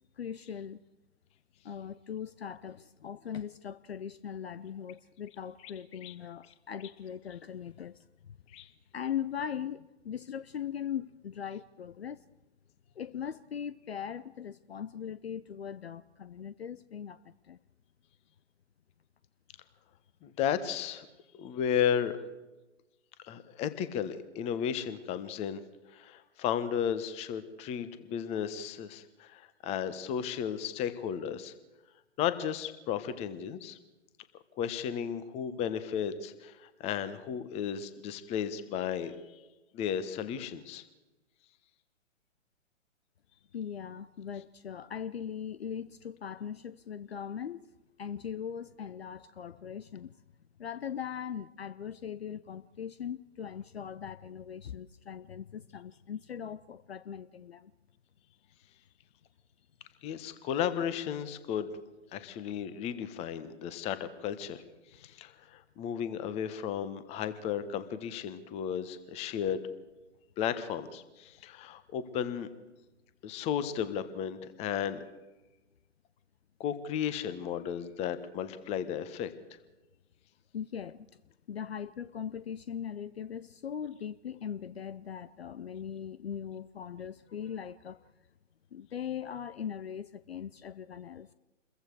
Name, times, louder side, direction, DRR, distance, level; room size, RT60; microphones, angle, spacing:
voice 1, 0.2-0.8 1.6-8.0 8.3-8.4 8.9-12.2 13.0-17.6 43.5-47.7 48.0-50.1 50.6-57.7 80.5-81.1 81.5-88.1 88.7-91.3, left 8 dB, 55° left, 0.8 m, -40 dB
voice 2, 20.2-21.1 21.3-22.2 23.2-25.6 25.9-31.5 32.2-33.8 34.6-39.2 39.7-40.8 60.0-61.7 62.1-64.6 64.9-69.6 70.4-72.5 73.2-75.0 76.6-79.3, left 8 dB, 15° left, 1.2 m, -34 dB
28.5 x 22.0 x 4.8 m
figure-of-eight pair, 125°, 38 cm